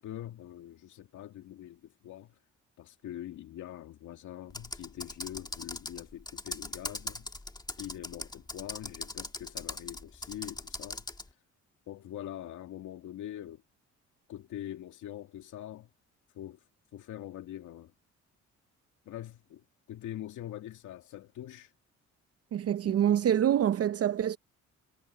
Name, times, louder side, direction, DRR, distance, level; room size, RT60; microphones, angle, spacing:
voice 1, 0.0-2.4 2.8-7.3 7.8-11.0 11.9-13.6 14.3-15.9 16.3-16.6 16.9-17.9 19.1-21.7 22.8-23.0, left 12 dB, 80° left, 2.2 m, -43 dB
Computer keyboard, 4.5-11.3, left 2 dB, 15° left, 1.8 m, -40 dB
voice 2, 22.5-24.4, right 10 dB, 55° right, 0.7 m, -26 dB
cardioid pair, 90°, 30 cm